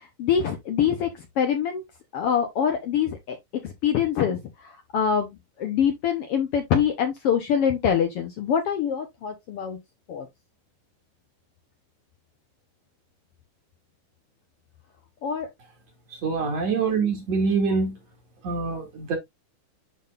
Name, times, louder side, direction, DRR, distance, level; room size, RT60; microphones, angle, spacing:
voice 1, 0.2-1.1 1.4-1.8 2.1-3.4 3.6-4.4 4.9-9.8 10.1-10.2 15.2-15.5, left 8 dB, 70° left, 1.4 m, -24 dB
voice 2, 16.2-17.9 18.4-19.2, right 4 dB, 55° right, 3.0 m, -25 dB
10.5 x 3.8 x 2.5 m
omnidirectional pair, 3.8 m